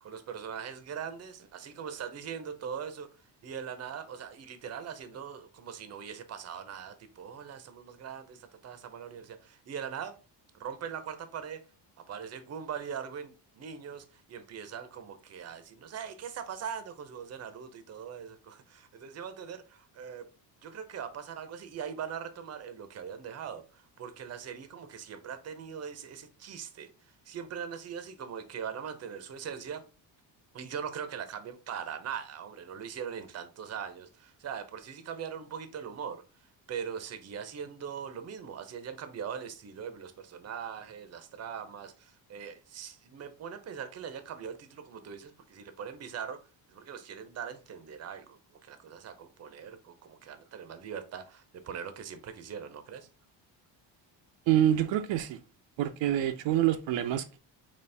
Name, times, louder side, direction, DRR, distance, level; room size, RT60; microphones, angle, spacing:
voice 1, 0.0-3.1 3.4-10.1 10.6-11.6 12.1-20.3 20.6-26.9 27.3-29.8 30.5-36.2 36.7-46.4 46.7-53.1, right 7 dB, 35° right, 0.6 m, -41 dB
voice 2, 54.5-55.4 55.8-57.4, right 12 dB, 75° right, 0.6 m, -26 dB
4.2 x 3.0 x 3.3 m
cardioid pair, 130°, 45 cm